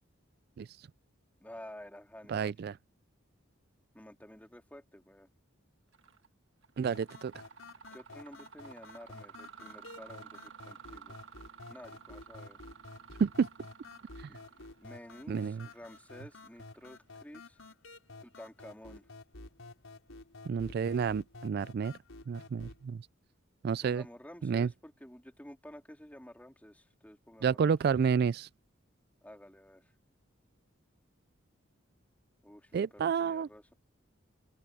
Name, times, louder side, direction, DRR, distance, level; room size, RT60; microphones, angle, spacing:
voice 1, 1.4-2.5 3.9-5.3 7.9-11.1 11.7-12.6 14.3-14.4 14.8-17.6 18.2-19.0 23.8-27.7 29.2-29.9 32.4-33.7, left 1 dB, 10° left, 3.2 m, -51 dB
voice 2, 2.3-2.7 6.8-7.3 13.2-13.5 14.2-14.3 15.3-15.7 20.5-21.9 22.3-23.0 23.6-24.0 24.4-24.7 27.4-28.5 32.7-33.5, right 6 dB, 50° right, 0.3 m, -30 dB
Mechanisms, 5.9-6.3 6.6-17.2, right 6 dB, 70° right, 1.4 m, -54 dB
sound 1, 6.8-22.8, left 2 dB, 85° left, 4.4 m, -51 dB
open air
head